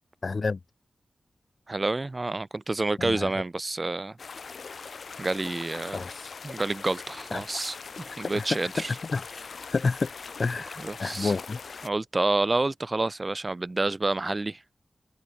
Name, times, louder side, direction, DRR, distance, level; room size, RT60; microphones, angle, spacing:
voice 1, 0.2-0.6 3.0-3.3 5.8-6.3 7.3-7.4 8.3-9.3 9.7-10.1 10.4-11.6, left 4 dB, 50° left, 7.4 m, -29 dB
voice 2, 1.7-4.2 5.2-6.0 6.4-7.7 8.1-8.9 10.8-11.3 11.8-14.6, right 2 dB, 30° right, 0.9 m, -28 dB
sound 1, 4.2-11.9, left 5 dB, 65° left, 6.4 m, -41 dB
wide cardioid pair, 130°, 0 cm